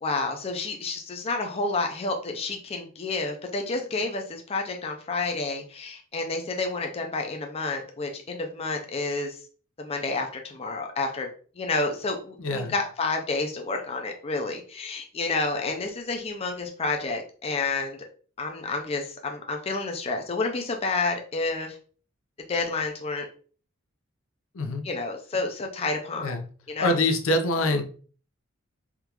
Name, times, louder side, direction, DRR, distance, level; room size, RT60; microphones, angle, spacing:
voice 1, 0.0-9.4 9.8-11.3 11.6-18.0 18.4-21.8 22.5-23.3 24.8-26.3 26.7-27.0, left 3 dB, 30° left, 3 dB, 0.4 m, -30 dB
voice 2, 12.4-12.7 24.5-24.8 26.2-26.4 26.8-27.8, left 2 dB, 80° left, 5 dB, 0.6 m, -25 dB
3.6 x 2.4 x 2.9 m, 0.41 s
head